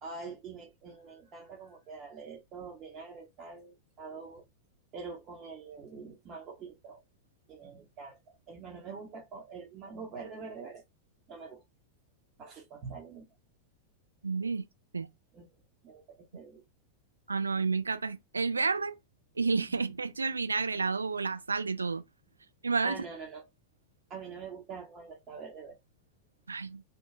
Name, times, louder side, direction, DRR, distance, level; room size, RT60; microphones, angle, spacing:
voice 1, 0.0-4.4 4.9-7.0 7.5-10.8 11.3-11.6 12.4-13.3 15.3-15.5 15.8-16.6 19.7-19.8 22.8-23.5 24.1-25.8, right 4 dB, 35° right, 0.8 m, -45 dB
voice 2, 14.2-14.7 14.9-15.1 17.3-18.9 19.4-22.0 22.6-23.0 26.5-26.8, right 4 dB, 75° right, 0.4 m, -30 dB
3.0 x 2.3 x 3.1 m
figure-of-eight pair, 90°, 0 cm